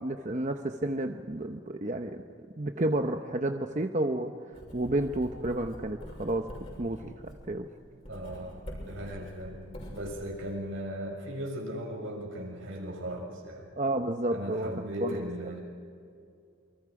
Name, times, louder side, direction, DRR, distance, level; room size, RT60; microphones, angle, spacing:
voice 1, 0.0-2.2 2.6-6.5 6.8-7.7 13.8-15.3, right 1 dB, 35° right, 5 dB, 0.9 m, -31 dB
Writing, 4.5-10.5, equal, 30° left, 6.7 m, -45 dB
voice 2, 8.1-9.6 9.9-13.7 14.3-15.6, equal, 80° right, 0 dB, 6.6 m, -37 dB
28.0 x 24.5 x 4.9 m, 2.3 s
head